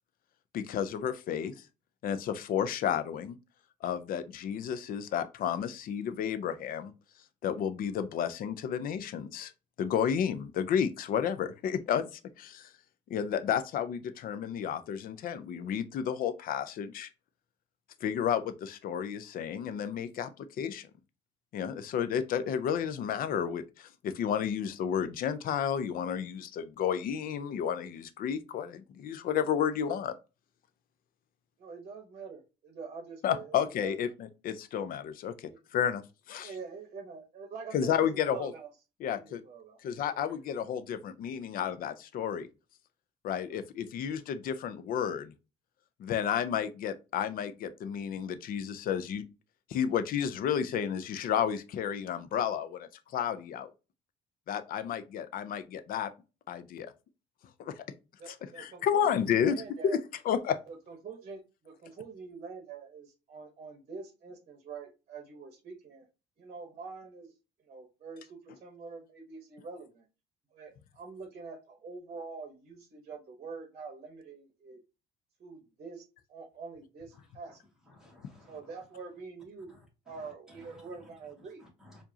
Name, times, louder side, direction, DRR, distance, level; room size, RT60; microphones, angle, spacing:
voice 1, 0.5-1.5 2.0-3.4 3.8-6.9 7.4-9.5 9.8-12.7 13.1-17.1 18.0-20.9 21.5-30.1 33.2-36.0 36.3-36.5 37.7-38.5 39.0-39.4 39.8-42.5 43.2-45.3 46.0-49.2 49.7-53.7 54.5-56.1 56.5-56.9 57.6-57.8 58.3-59.6 59.9-60.6, left 8 dB, 60° left, 0.6 m, -32 dB
voice 2, 31.6-34.0 35.5-35.6 36.4-38.7 39.1-40.3 43.5-43.6 58.2-60.0 60.7-66.1 66.4-67.3 67.6-70.1 70.5-74.8 75.4-76.0 76.3-77.6 78.5-79.7 80.1-81.6, right 5 dB, 45° right, 1.1 m, -45 dB
voice 3, 77.1-77.5 77.9-78.6 79.7-81.1 81.4-82.0, left 1 dB, 5° right, 1.6 m, -58 dB
4.7 x 2.6 x 2.7 m
cardioid pair, 110°, 17 cm